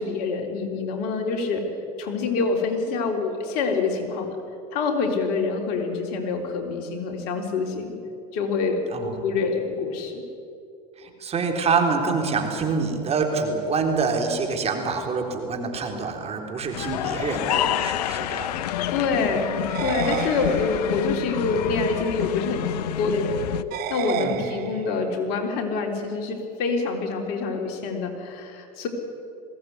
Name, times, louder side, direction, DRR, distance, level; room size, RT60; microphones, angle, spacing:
voice 1, 0.0-1.6 2.0-4.4 4.7-7.9 8.3-8.8 9.2-10.2 18.9-22.7 23.0-23.5 23.9-28.9, left 4 dB, 60° left, 3 dB, 3.8 m, -26 dB
voice 2, 11.0-18.7 24.2-24.4, right 4 dB, 30° right, 3 dB, 3.7 m, -26 dB
sound 1, 16.7-23.6, left 12 dB, 75° left, 0.9 m, -28 dB
sound 2, 19.7-21.1 23.7-25.1, right 13 dB, 50° right, 1.2 m, -31 dB
21.0 x 17.0 x 9.6 m, 2.6 s
hypercardioid pair, 100°, 20 cm